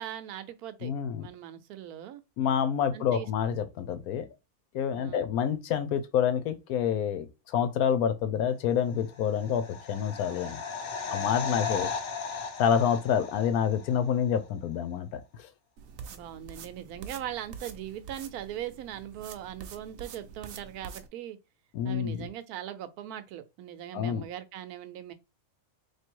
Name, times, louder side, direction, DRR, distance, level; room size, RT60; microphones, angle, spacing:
voice 1, 0.0-0.9 1.2-2.2 2.9-3.3 4.9-5.3 11.0-11.9 16.1-21.4 21.8-25.1, right 11 dB, 80° right, 1.1 m, -40 dB
voice 2, 0.8-1.3 2.4-4.3 4.7-10.6 11.1-11.9 12.6-15.5 21.7-22.3 23.9-24.2, left 8 dB, 80° left, 1.1 m, -28 dB
sound 1, 9.1-14.0 14.3-14.4, left 5 dB, 60° left, 0.6 m, -36 dB
sound 2, 15.8-21.1, right 6 dB, 65° right, 0.8 m, -46 dB
3.1 x 2.6 x 4.4 m
omnidirectional pair, 1.6 m